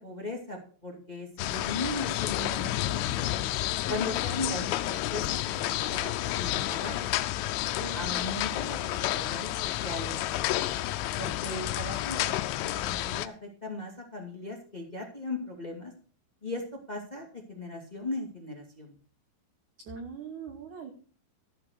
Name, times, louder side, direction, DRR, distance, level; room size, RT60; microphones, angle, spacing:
voice 1, 0.0-3.4 3.9-7.1 7.9-10.2 11.1-12.3 12.6-15.9 16.4-16.6 16.9-18.9, left 2 dB, 25° left, 1 dB, 0.8 m, -38 dB
sound 1, 1.4-13.3, left 14 dB, 80° left, 3.0 m, -30 dB
voice 2, 7.8-8.4 19.8-20.9, right 6 dB, 80° right, 5 dB, 1.7 m, -41 dB
14.0 x 6.1 x 6.6 m, 0.41 s
omnidirectional pair, 5.6 m